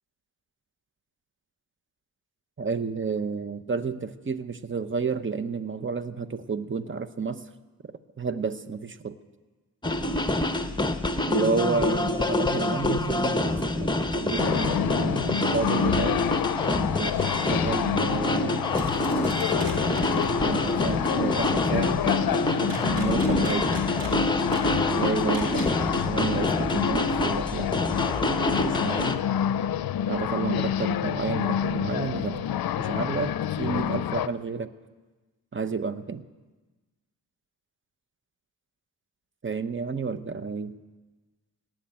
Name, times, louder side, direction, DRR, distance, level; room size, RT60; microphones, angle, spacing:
voice 1, 2.6-7.4 7.8-7.9 8.2-9.2 11.3-16.2 17.0-18.7 20.4-22.1 22.6-23.8 24.8-25.7 26.0-28.0 28.6-29.2 30.1-32.5 32.8-34.7 35.5-36.2 39.4-40.7, right 5 dB, 30° right, 12 dB, 0.9 m, -31 dB
sound 1, 9.8-29.2, left 1 dB, 10° left, 1.0 m, -27 dB
sound 2, 14.4-34.3, left 10 dB, 65° left, 0.6 m, -28 dB
sound 3, 18.7-20.4 22.7-25.8, right 2 dB, 60° right, 2.7 m, -40 dB
18.5 x 7.4 x 8.8 m, 1.2 s
cardioid pair, 55°, 38 cm